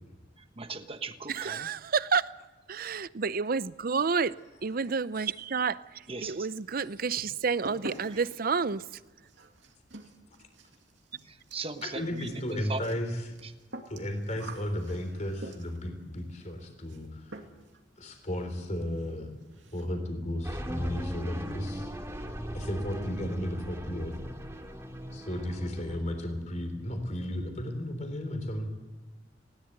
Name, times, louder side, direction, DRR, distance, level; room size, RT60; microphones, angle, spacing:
voice 1, 0.6-1.7 6.1-6.5 8.1-8.2 11.2-12.8 13.4-13.5, right 4 dB, 30° right, 1.3 m, -39 dB
voice 2, 1.3-2.3 2.7-9.0, right 5 dB, 50° right, 0.6 m, -30 dB
sound 1, 6.2-6.8 7.0-15.9 16.9-17.1 17.3-17.8 18.1-18.2 18.6-18.7 18.9-19.1 19.4-19.9, right 1 dB, 80° right, 2.5 m, -47 dB
voice 3, 11.8-13.1 13.9-17.4 18.0-19.3 19.7-21.9 22.5-24.2 25.1-28.8, left 1 dB, 40° left, 3.7 m, -34 dB
sound 2, 20.4-26.0, equal, 15° right, 2.4 m, -39 dB
20.0 x 17.5 x 8.1 m
head